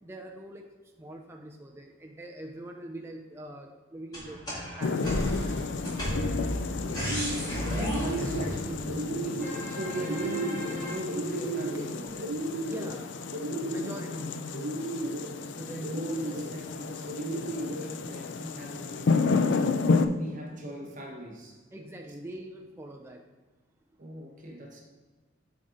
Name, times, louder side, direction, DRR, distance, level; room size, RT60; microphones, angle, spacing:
voice 1, 0.0-0.7 1.0-6.0 9.8-10.1 12.5-13.1 13.7-14.4 18.2-18.3 21.7-23.2, right 1 dB, 10° right, 1 dB, 0.4 m, -44 dB
sound 1, 4.1-8.9 9.4-10.9, equal, 20° left, 1.9 m, -34 dB
sound 2, 4.8-20.1, left 4 dB, 60° left, 0.4 m, -32 dB
sound 3, 6.0-6.4 6.8-7.5 7.8-8.5 8.9-9.6 10.0-10.7 11.1-11.9 12.2-12.9 13.3-14.1 14.5-15.3 15.8-16.5 17.1-17.9, right 2 dB, 85° right, 0.8 m, -34 dB
voice 2, 6.9-7.3 7.7-12.4 15.2-21.6 24.0-24.8, right 1 dB, 40° right, 0 dB, 1.0 m, -40 dB
7.5 x 3.8 x 3.8 m, 1.4 s
head